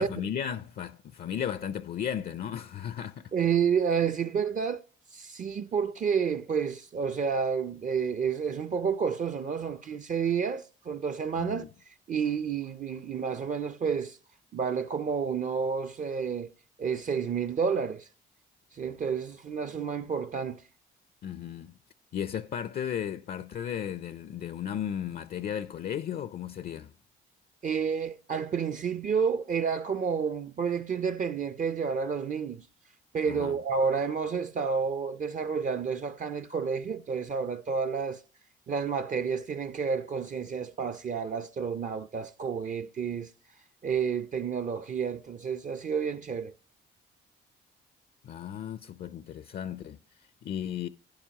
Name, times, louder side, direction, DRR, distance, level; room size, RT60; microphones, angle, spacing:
voice 1, 0.0-3.3 11.4-11.7 21.2-21.8 22.1-26.9 33.3-33.6 48.2-50.9, left 9 dB, 50° left, 0.5 m, -35 dB
voice 2, 3.3-4.8 5.1-11.7 12.1-14.2 14.5-16.5 16.8-18.1 18.7-20.6 27.6-32.7 33.1-38.2 38.7-43.3 43.8-46.5, right 6 dB, 40° right, 0.5 m, -30 dB
11.5 x 9.7 x 2.8 m
cardioid pair, 90°, 20 cm